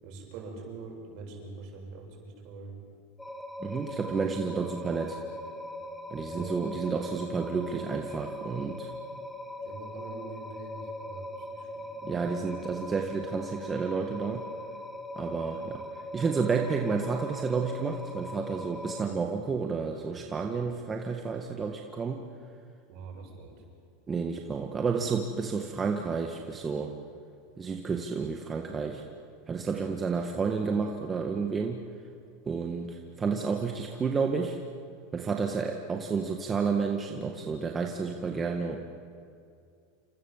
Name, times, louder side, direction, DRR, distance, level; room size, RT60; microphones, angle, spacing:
voice 1, 0.0-2.8 6.2-6.6 9.6-11.9 12.3-12.4 22.9-23.6, right 4 dB, 55° right, 1 dB, 7.8 m, -44 dB
sound 1, 3.2-19.0, left 1 dB, 5° left, 1.8 m, -40 dB
voice 2, 3.6-5.2 6.1-8.9 12.0-14.4 15.2-22.2 24.1-26.9 27.6-29.0 29.5-31.8 32.5-34.6 35.1-38.8, right 5 dB, 20° right, 2 dB, 1.7 m, -31 dB
28.0 x 27.0 x 7.4 m, 2.4 s
supercardioid pair, 140°, 0 cm